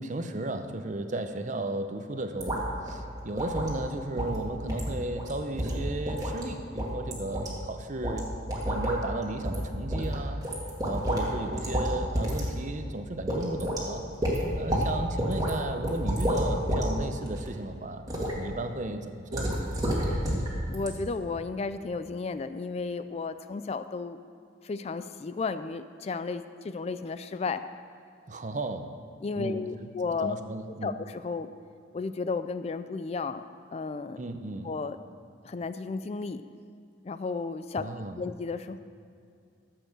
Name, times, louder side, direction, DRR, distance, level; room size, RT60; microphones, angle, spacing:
voice 1, 0.0-8.3 8.6-10.4 10.8-18.0 18.4-19.6 28.3-28.9 29.4-29.9 30.2-30.9 34.2-34.7 37.8-38.2, right 2 dB, 40° right, 8 dB, 0.7 m, -35 dB
sound 1, 2.4-2.6 2.9-3.0 3.4-3.7 4.2-4.4 4.7-4.9 5.2-5.3 5.6-6.4 6.8-7.5 8.0-8.2 8.5-9.0 9.4-9.6 9.9-11.3 11.5-11.9 12.1-12.4 12.8-12.9 13.3-13.8 14.2-14.9 15.2-15.5 15.8-16.8 17.2-17.5 18.1-18.3 19.3-20.5 20.7-20.9, equal, 20° right, 2.1 m, -29 dB
voice 2, 20.7-24.2 24.6-27.6 29.2-30.4 30.8-31.5 31.9-33.4 33.7-34.2 34.6-35.0 35.4-36.4 37.0-37.9 38.2-38.8, left 4 dB, 35° left, 11 dB, 0.3 m, -33 dB
13.5 x 7.7 x 6.4 m, 2.4 s
head